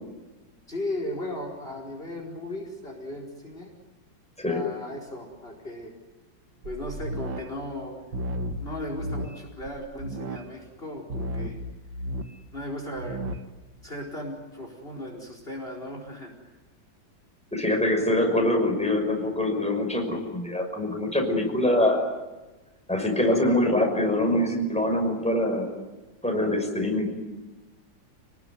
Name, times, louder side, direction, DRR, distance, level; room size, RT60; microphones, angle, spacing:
voice 1, 0.7-3.7 4.5-5.9 6.6-8.0 8.6-11.6 12.5-13.2 13.8-16.3, left 1 dB, 30° left, 2 dB, 4.9 m, -36 dB
sound 1, 6.6-7.4 8.1-10.4 11.1-12.4 13.0-13.4, equal, 75° right, 2.4 m, -33 dB
voice 2, 17.5-22.0 22.9-25.7 26.2-27.2, left 1 dB, 5° left, 2 dB, 5.7 m, -24 dB
30.0 x 20.5 x 9.5 m, 1.1 s
omnidirectional pair, 2.1 m